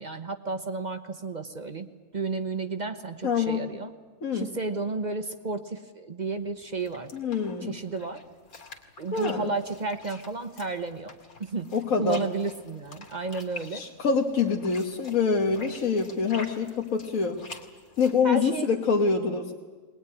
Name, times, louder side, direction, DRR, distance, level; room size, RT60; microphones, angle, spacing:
voice 1, 0.0-3.9 4.3-7.1 7.6-8.2 9.0-11.1 11.4-13.8 18.2-18.7, right 3 dB, 35° right, 7 dB, 1.1 m, -32 dB
voice 2, 3.2-3.7 4.2-4.5 7.1-7.8 9.1-9.5 11.7-12.2 13.7-17.4 18.0-19.5, left 5 dB, 70° left, 0 dB, 1.7 m, -25 dB
sound 1, 6.4-18.2, left 3 dB, 90° left, 2.7 m, -47 dB
22.0 x 20.5 x 9.6 m, 1.4 s
omnidirectional pair, 1.5 m